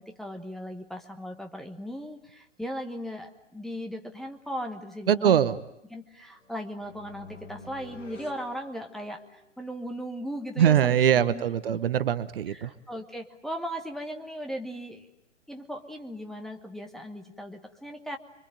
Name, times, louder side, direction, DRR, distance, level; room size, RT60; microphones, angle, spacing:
voice 1, 0.0-5.6 5.9-11.0 11.3-11.8 12.5-15.1 15.5-18.2, equal, ahead, 2 dB, 1.3 m, -37 dB
voice 2, 5.1-5.6 10.6-12.7, right 9 dB, 45° right, 14 dB, 1.1 m, -22 dB
sound 1, 6.4-9.4, left 4 dB, 75° left, 2.9 m, -49 dB
27.0 x 24.0 x 9.0 m, 0.85 s
figure-of-eight pair, 125°, 38 cm